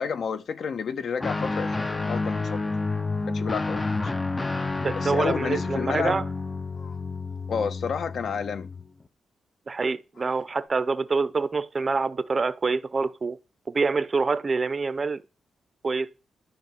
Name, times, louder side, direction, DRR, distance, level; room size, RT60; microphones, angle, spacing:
voice 1, 0.0-2.6 3.3-4.0 5.0-6.2 7.5-8.7, left 6 dB, 55° left, 1.1 m, -30 dB
Guitar, 1.2-8.9, left 3 dB, 15° left, 0.7 m, -30 dB
sound 1, 3.2-4.0 4.4-4.8 5.3-6.0 6.7-7.0 7.3-7.4 7.6-7.7 8.0-8.1 9.9-10.7, left 4 dB, 85° left, 7.2 m, -53 dB
voice 2, 4.8-6.3 9.7-13.4 13.7-15.2 15.8-16.1, right 4 dB, 25° right, 0.7 m, -26 dB
12.5 x 5.9 x 9.0 m
wide cardioid pair, 170°, 0 cm